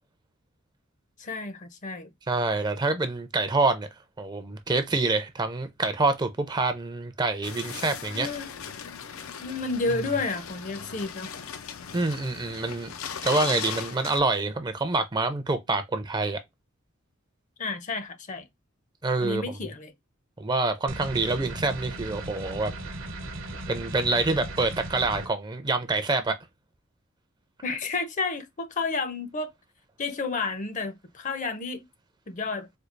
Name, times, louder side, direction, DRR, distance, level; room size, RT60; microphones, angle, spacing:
voice 1, 1.2-2.1 8.1-8.5 9.4-11.3 17.6-18.4 19.2-19.9 27.6-29.5 30.0-31.9 32.3-32.7, left 3 dB, 40° left, 0.6 m, -31 dB
voice 2, 2.3-3.9 4.2-8.3 11.9-12.9 13.2-16.4 19.0-19.6 20.4-22.7 23.7-26.4, right 3 dB, 20° right, 0.5 m, -26 dB
sound 1, 7.4-14.2, left 7 dB, 85° left, 0.5 m, -38 dB
sound 2, 20.9-25.3, right 2 dB, 70° right, 1.0 m, -37 dB
4.4 x 2.3 x 2.5 m
head